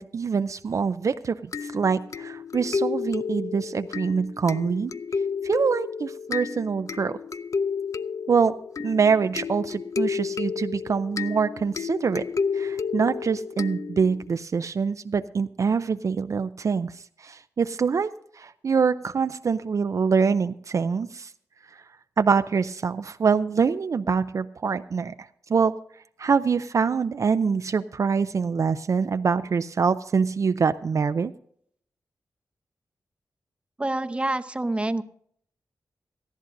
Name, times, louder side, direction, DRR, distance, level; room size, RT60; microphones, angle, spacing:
voice 1, 0.0-4.9 5.4-7.2 8.3-8.5 8.8-12.3 12.5-16.9 17.2-18.1 18.4-21.3 22.2-25.1 25.5-25.8 26.2-31.3, right 5 dB, 55° right, 10 dB, 0.4 m, -24 dB
sound 1, 1.5-14.3, left 5 dB, 55° left, 0.4 m, -31 dB
voice 2, 33.8-35.0, right 2 dB, 15° right, 9 dB, 0.8 m, -27 dB
18.5 x 13.5 x 2.6 m, 0.65 s
cardioid pair, 80°, 7 cm